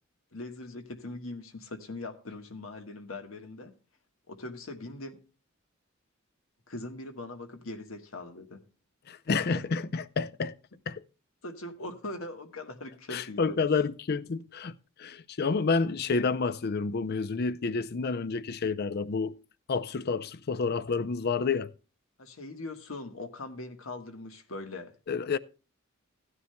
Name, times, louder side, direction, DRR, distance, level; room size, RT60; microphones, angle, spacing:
voice 1, 0.3-3.7 4.3-5.2 6.7-8.6 9.5-9.6 11.4-13.6 22.2-24.9, left 2 dB, 85° left, 1.4 m, -41 dB
voice 2, 9.1-10.5 10.9-11.0 13.1-19.4 19.7-21.7 25.1-25.4, left 4 dB, 50° left, 0.5 m, -29 dB
16.0 x 9.8 x 2.2 m
head